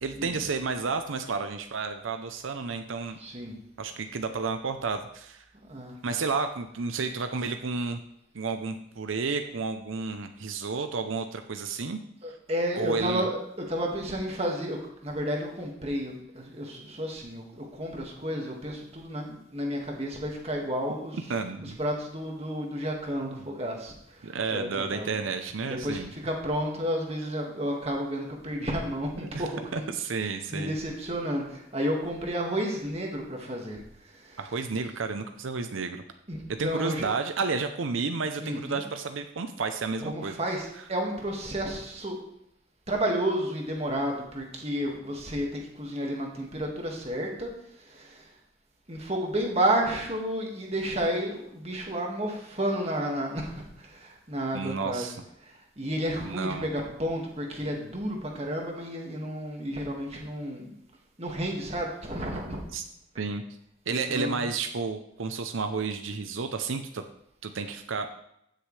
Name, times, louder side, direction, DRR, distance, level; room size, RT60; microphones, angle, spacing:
voice 1, 0.0-3.2 3.8-5.4 6.0-8.0 8.3-12.0 12.8-13.3 21.3-21.8 23.2-23.5 24.2-26.1 29.2-29.4 29.7-30.7 34.4-36.0 36.5-40.4 54.5-55.2 56.2-56.7 62.7-62.8 63.2-63.4 63.9-67.0 67.4-68.1, right 4 dB, 85° right, 7 dB, 0.7 m, -31 dB
voice 2, 3.2-3.6 5.6-6.0 12.2-25.3 25.6-34.6 36.3-37.1 38.4-38.8 40.0-42.2 42.9-48.3 48.9-55.1 55.4-60.7 61.2-62.6 63.9-64.5, equal, 30° right, 0 dB, 1.9 m, -32 dB
15.5 x 6.5 x 3.3 m, 0.76 s
head